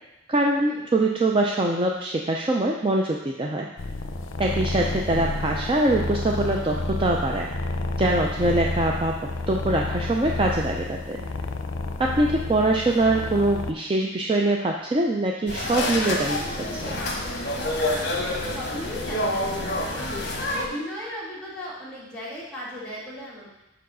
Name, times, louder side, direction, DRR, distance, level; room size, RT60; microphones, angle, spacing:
voice 1, 0.3-3.7 4.4-7.5 8.0-9.2 9.5-11.3 12.0-17.0, right 2 dB, 25° right, 0 dB, 0.4 m, -23 dB
sound 1, 3.8-13.7, left 2 dB, 85° left, 0.5 m, -30 dB
sound 2, 15.5-20.7, left 1 dB, 55° left, 1.1 m, -28 dB
voice 2, 17.7-20.1 20.5-23.5, equal, 5° left, -8 dB, 1.9 m, -36 dB
5.5 x 4.7 x 6.1 m, 0.93 s
head